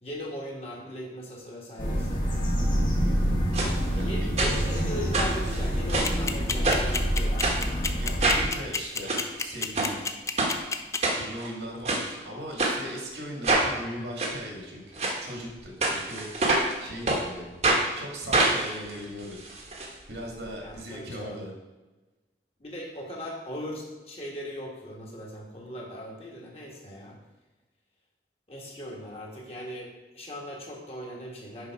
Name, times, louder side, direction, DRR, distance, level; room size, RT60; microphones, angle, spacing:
voice 1, 0.0-2.3 4.0-7.6 20.6-21.4 22.6-27.2 28.5-31.7, equal, 35° left, -2 dB, 1.6 m, -39 dB
sound 1, 1.8-8.5, equal, 50° left, 1.5 m, -27 dB
sound 2, 3.5-3.7 4.4-4.8 5.1-6.2 6.6-7.0 7.4-7.6 8.2-8.5 8.9-9.2 9.7-9.9 10.4-10.5 11.0-11.5 11.8-12.0 12.6-12.8 13.4-13.7 14.2-14.3 15.0-15.2 15.8-16.7 17.1-17.2 17.6-17.8 18.3-19.9 20.1-20.2 20.5-20.6, right 2 dB, 40° right, 1.1 m, -25 dB
voice 2, 3.9-4.3 8.0-10.0 11.1-14.8 15.2-16.3 16.8-17.5 17.9-19.5 20.1-21.5, equal, 75° right, 0 dB, 1.9 m, -38 dB
sound 3, 6.0-11.0, left 5 dB, 15° left, 0.3 m, -28 dB
6.8 x 5.6 x 4.8 m, 1.1 s
head